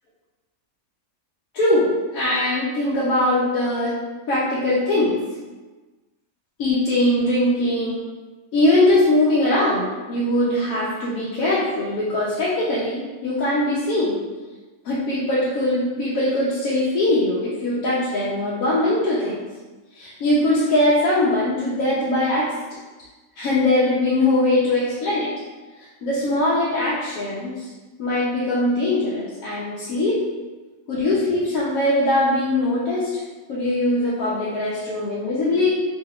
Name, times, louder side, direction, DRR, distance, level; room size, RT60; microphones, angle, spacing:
voice 1, 1.5-1.9 2.1-3.9 4.3-5.1 6.6-8.0 8.5-14.2 14.8-19.4 19.9-22.5 23.4-25.3 25.8-27.7 28.0-30.2 30.9-33.2 33.5-35.8, left 1 dB, 80° left, -7 dB, 1.1 m, -21 dB
3.1 x 2.2 x 3.4 m, 1.3 s
omnidirectional pair, 1.5 m